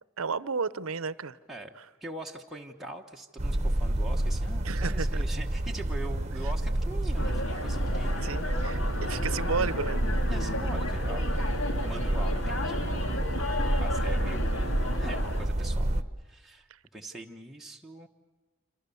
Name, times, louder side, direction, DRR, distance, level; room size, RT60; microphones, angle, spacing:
voice 1, 0.2-1.4 4.6-5.1 8.2-10.0, right 5 dB, 85° right, 17 dB, 0.8 m, -32 dB
voice 2, 1.5-9.4 10.3-11.5 11.8-13.0 13.8-14.6 15.0-18.1, right 1 dB, ahead, -1 dB, 1.2 m, -43 dB
sound 1, 3.4-16.0, right 1 dB, 30° right, 1.0 m, -29 dB
sound 2, 7.2-15.5, left 2 dB, 65° left, 2.2 m, -35 dB
27.0 x 27.0 x 7.0 m, 1.2 s
head